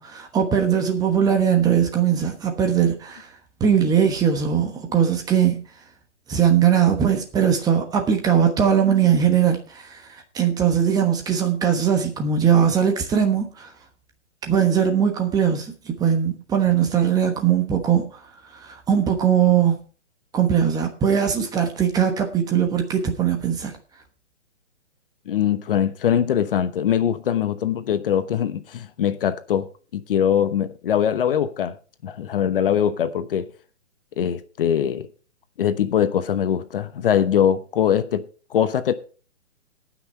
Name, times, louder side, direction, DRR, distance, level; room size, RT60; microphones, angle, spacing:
voice 1, 0.0-3.3 3.6-5.6 6.3-10.0 10.3-13.7 14.4-18.1 18.6-19.8 20.3-23.7, right 8 dB, 10° right, 1.1 m, -20 dB
voice 2, 25.3-31.7 32.0-33.5 34.2-35.1 35.6-38.2 38.5-38.9, left 9 dB, 50° left, 1.0 m, -22 dB
18.0 x 6.1 x 4.4 m
hypercardioid pair, 140°, 36 cm